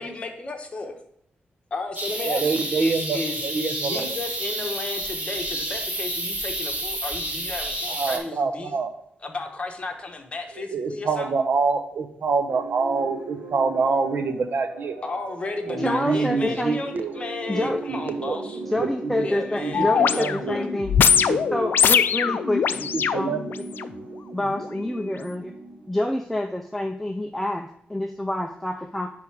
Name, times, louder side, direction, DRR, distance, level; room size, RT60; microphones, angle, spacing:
voice 1, 0.0-0.9 1.7-8.8 9.2-11.3 15.0-18.6 19.2-20.6, left 3 dB, 35° left, 3 dB, 1.1 m, -33 dB
sound 1, 1.9-8.2, right 1 dB, 35° right, 2.5 m, -30 dB
voice 2, 2.2-4.1 7.9-8.9 10.6-15.0 15.7-17.1 17.6-18.4 18.8-19.3 19.6-20.6 21.3-21.7 22.9-23.5, right 4 dB, 60° right, 8 dB, 0.8 m, -26 dB
sound 2, 12.5-26.2, right 3 dB, 75° right, 1.6 m, -38 dB
voice 3, 15.8-16.8 17.5-17.8 18.7-20.9 21.5-23.3 24.3-25.5 25.9-29.1, left 1 dB, 5° left, 5 dB, 0.4 m, -27 dB
sound 3, 19.7-23.9 24.5-24.6, left 7 dB, 70° left, 0.3 m, -22 dB
10.5 x 3.5 x 4.7 m, 0.72 s
wide cardioid pair, 120°, 4 cm